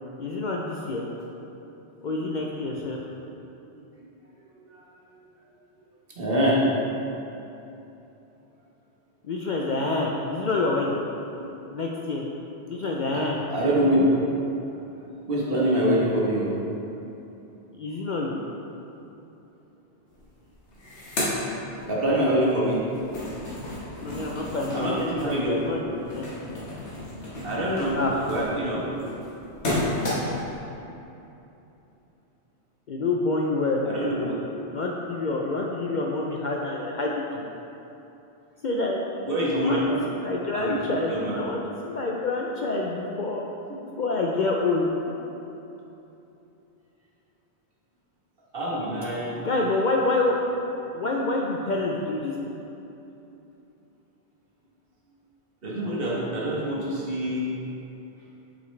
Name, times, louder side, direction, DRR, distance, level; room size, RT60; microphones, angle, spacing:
voice 1, 0.2-1.1 2.0-3.0 9.2-11.0 11.7-12.3 12.7-13.4 17.8-18.4 24.0-26.2 27.9-28.2 32.9-34.5 34.7-37.4 38.6-39.0 39.5-41.6 41.8-43.4 44.0-44.9 49.4-50.4 50.9-52.3, left 2 dB, 55° left, -2 dB, 0.5 m, -27 dB
voice 2, 4.5-4.8 6.2-6.6 13.1-13.2 13.5-14.0 15.2-16.5 21.9-22.8 23.6-23.7 24.7-25.6 27.4-28.0 28.3-28.9 33.8-34.3 39.3-39.9 40.5-40.8 41.1-41.4 48.5-49.4 55.6-57.5, equal, 55° right, -5 dB, 1.4 m, -25 dB
sound 1, 20.1-20.2 20.5-22.3 22.7-30.6, left 1 dB, 85° left, 1.6 m, -32 dB
8.0 x 5.1 x 3.2 m, 2.9 s
omnidirectional pair, 1.1 m